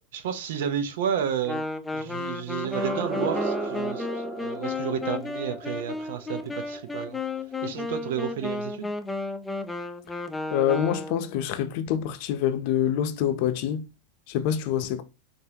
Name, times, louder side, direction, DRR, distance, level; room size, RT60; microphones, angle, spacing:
voice 1, 0.1-1.6 1.9-7.2 7.6-8.9, right 8 dB, 70° right, 0.8 m, -31 dB
Wind instrument woodwind instrument, 1.4-11.3, left 3 dB, 10° left, 0.6 m, -33 dB
sound 1, 2.6-7.5, right 4 dB, 30° right, 1.8 m, -35 dB
voice 2, 10.5-13.8 14.3-15.0, left 10 dB, 60° left, 0.7 m, -26 dB
5.6 x 2.6 x 2.9 m
hypercardioid pair, 110°, 0 cm